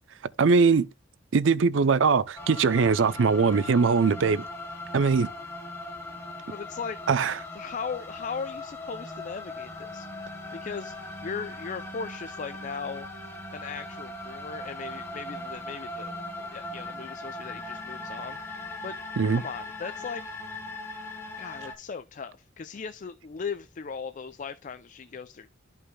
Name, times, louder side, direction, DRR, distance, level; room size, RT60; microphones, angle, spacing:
voice 1, 0.4-0.9 1.3-4.4 4.9-5.3 7.1-7.3 19.2-19.4, right 5 dB, 85° right, 0.5 m, -21 dB
sound 1, 2.4-21.7, left 2 dB, 15° left, 2.3 m, -39 dB
voice 2, 6.5-7.0 7.5-10.1 10.5-11.0 11.2-13.1 13.5-16.2 16.5-18.4 18.8-19.0 19.3-20.4 21.4-25.5, left 5 dB, 40° left, 0.4 m, -38 dB
13.0 x 5.4 x 2.2 m
head